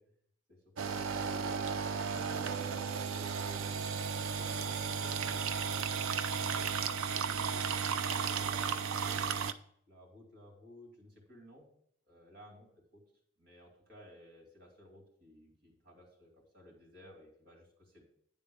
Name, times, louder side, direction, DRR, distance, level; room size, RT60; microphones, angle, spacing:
voice 1, 0.5-1.6 2.0-7.8 8.1-9.3 9.9-11.7 12.1-12.7 12.9-13.0 13.4-18.0, equal, 45° right, -1 dB, 2.7 m, -56 dB
sound 1, 0.8-9.5, right 6 dB, 85° right, 0.5 m, -34 dB
9.9 x 3.8 x 6.9 m, 0.66 s
head